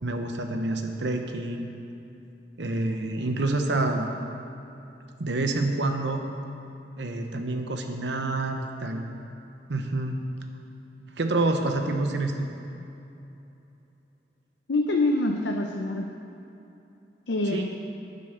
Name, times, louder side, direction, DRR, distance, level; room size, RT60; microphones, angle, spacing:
voice 1, 0.0-1.7 2.6-4.1 5.2-6.2 7.0-9.0 9.7-10.1 11.2-12.5 17.5-17.6, right 2 dB, 80° right, 5 dB, 0.9 m, -27 dB
voice 2, 14.7-16.1 17.3-17.7, left 2 dB, 90° left, 2 dB, 0.7 m, -25 dB
9.7 x 7.7 x 6.6 m, 2.9 s
head